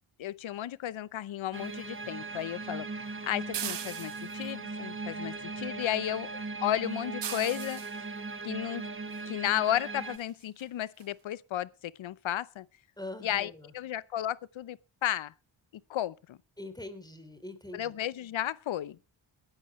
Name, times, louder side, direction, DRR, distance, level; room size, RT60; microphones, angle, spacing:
voice 1, 0.2-6.3 6.6-7.8 8.4-8.9 9.2-12.6 13.2-15.3 15.9-16.4 17.7-19.2, left 12 dB, 70° left, 0.7 m, -33 dB
sound 1, 1.5-10.2, right 3 dB, 25° right, 1.3 m, -39 dB
sound 2, 3.5-4.5 7.2-8.0 9.5-9.6 10.1-10.3 10.6-10.7 11.0-11.1, right 10 dB, 60° right, 0.9 m, -38 dB
voice 2, 13.0-13.7 16.6-17.9, left 2 dB, 10° left, 3.2 m, -43 dB
21.5 x 11.0 x 3.1 m
cardioid pair, 55°, 48 cm